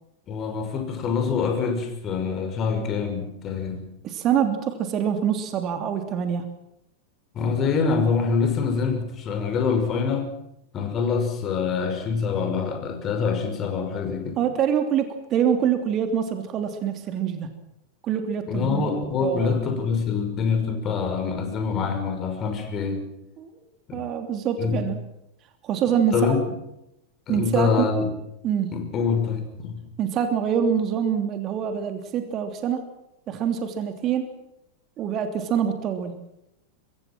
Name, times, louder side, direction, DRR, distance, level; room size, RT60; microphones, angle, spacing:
voice 1, 0.3-3.8 7.3-10.3 10.7-14.4 18.5-23.1 23.9-24.1 24.6-24.9 26.1-26.4 27.3-28.1 28.7-29.8, left 5 dB, 30° left, 6 dB, 6.1 m, -25 dB
voice 2, 4.0-6.5 14.4-17.5 18.0-19.5 23.4-23.5 23.9-25.0 25.6-26.4 27.3-27.9 28.4-28.7 30.0-32.8 33.3-34.2 35.0-36.1, right 8 dB, 35° right, 6 dB, 3.1 m, -25 dB
26.5 x 23.5 x 6.2 m, 0.83 s
figure-of-eight pair, 90°, 0 cm